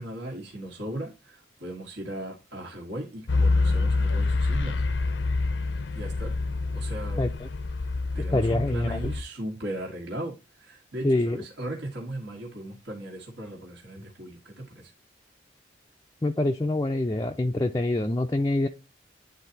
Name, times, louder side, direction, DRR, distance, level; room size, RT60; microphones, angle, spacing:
voice 1, 0.0-4.8 5.9-6.3 6.7-7.2 8.1-14.9, right 1 dB, 70° right, 1.6 m, -37 dB
sound 1, 3.3-9.2, left 3 dB, 80° left, 0.7 m, -26 dB
voice 2, 8.3-9.0 11.0-11.4 16.2-18.7, left 2 dB, 20° left, 0.4 m, -25 dB
10.0 x 4.0 x 2.7 m
head